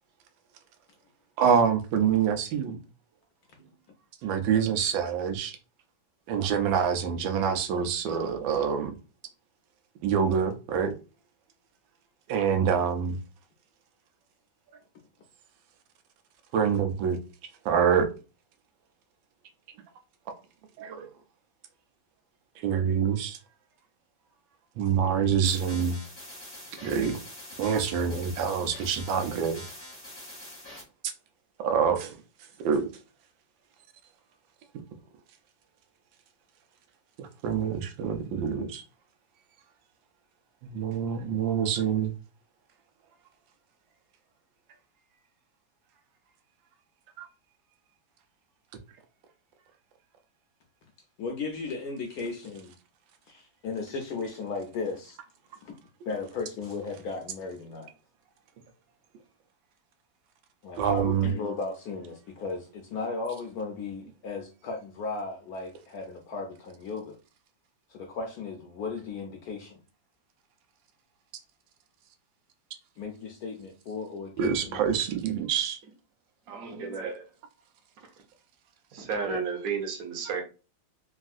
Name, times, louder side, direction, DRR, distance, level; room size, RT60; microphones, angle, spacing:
voice 1, 1.4-2.8 4.2-5.6 6.3-8.9 10.0-10.9 12.3-13.2 16.5-17.2 17.6-18.1 20.8-21.1 22.6-23.4 24.8-26.0 26.8-27.2 27.6-29.6 31.6-32.1 32.6-32.9 37.2-38.8 40.6-42.1 47.2-47.3 60.7-61.3 74.4-75.8, right 7 dB, 85° right, 1.3 m, -26 dB
sound 1, 25.4-30.8, left 1 dB, 15° left, 0.5 m, -44 dB
voice 2, 51.2-52.7 53.3-55.2 55.6-55.7 56.1-57.9 60.6-67.2 67.9-69.8 73.0-74.9, left 4 dB, 70° left, 0.9 m, -36 dB
voice 3, 76.5-77.3 78.0-78.1 78.9-80.4, right 5 dB, 60° right, 1.1 m, -32 dB
3.5 x 2.4 x 2.4 m
omnidirectional pair, 2.0 m